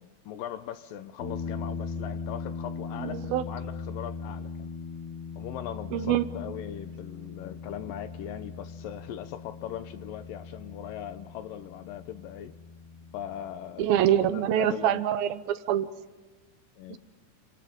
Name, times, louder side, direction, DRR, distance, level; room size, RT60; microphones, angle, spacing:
voice 1, 0.0-4.7 5.4-12.5 13.1-15.2 16.8-17.0, left 10 dB, 75° left, 11 dB, 2.2 m, -40 dB
sound 1, 1.2-14.3, left 4 dB, 45° left, 7.7 m, -39 dB
voice 2, 3.0-3.5 5.9-6.2 13.8-15.9 16.9-17.0, right 11 dB, 75° right, 12 dB, 2.5 m, -25 dB
30.0 x 26.5 x 3.7 m, 1.2 s
omnidirectional pair, 4.5 m